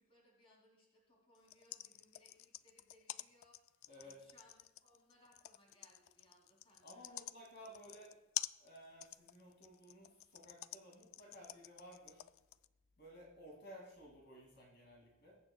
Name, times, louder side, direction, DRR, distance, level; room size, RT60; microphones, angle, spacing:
voice 1, 0.0-3.6 4.0-7.2 7.9-8.0, left 1 dB, 25° left, -2 dB, 3.0 m, -69 dB
sound 1, 1.3-12.7, left 14 dB, 70° left, 0.3 m, -48 dB
voice 2, 3.9-4.2 6.8-8.1 8.6-12.2 13.0-15.4, equal, 50° left, -2 dB, 2.6 m, -56 dB
22.0 x 8.6 x 2.3 m, 1.1 s
head